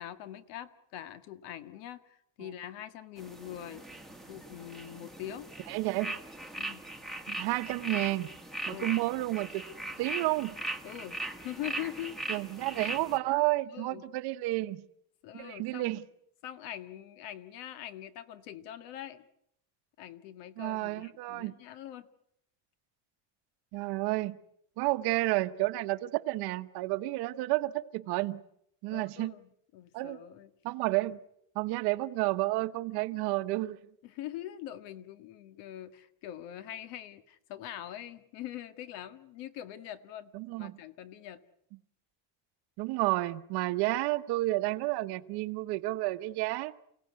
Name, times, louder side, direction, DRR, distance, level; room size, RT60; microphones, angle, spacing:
voice 1, 0.0-3.8 4.3-5.5 6.6-6.8 8.7-8.9 10.8-12.2 13.7-14.0 15.2-16.0 16.4-19.3 20.0-22.1 28.9-30.5 34.0-41.4, left 12 dB, 70° left, 11 dB, 1.9 m, -43 dB
sound 1, 3.2-13.2, right 2 dB, ahead, 1.4 m, -40 dB
voice 2, 5.7-6.2 7.3-8.3 8.7-9.6 10.0-10.6 12.3-14.9 15.3-16.0 20.6-21.6 23.7-24.4 24.8-28.4 28.8-29.3 29.9-30.2 30.6-31.2 31.5-33.8 40.3-40.8 42.8-46.7, right 19 dB, 60° right, 12 dB, 1.1 m, -31 dB
29.5 x 17.5 x 9.5 m, 0.76 s
cardioid pair, 180°, 44 cm